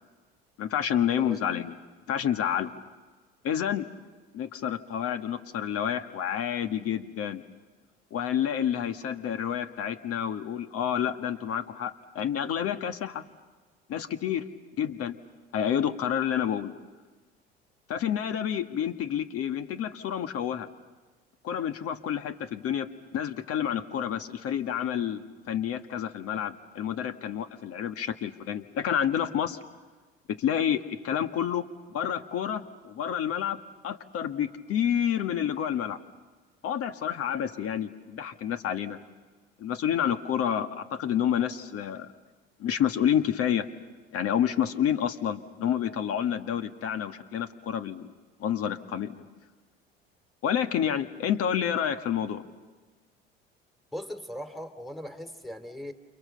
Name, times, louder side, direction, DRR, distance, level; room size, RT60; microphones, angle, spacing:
voice 1, 0.6-1.7 2.1-2.7 3.4-3.9 4.3-7.4 8.1-13.2 13.9-14.5 14.8-15.2 15.5-16.7 17.9-20.7 21.4-29.6 30.3-31.6 31.9-36.0 36.6-39.0 39.6-42.1 42.6-43.7 44.1-48.1 48.4-49.3 50.4-52.4, left 9 dB, 50° left, 9 dB, 1.8 m, -29 dB
voice 2, 53.9-55.9, equal, ahead, 7 dB, 2.8 m, -39 dB
29.0 x 28.5 x 6.8 m, 1.4 s
hypercardioid pair, 65°, 31 cm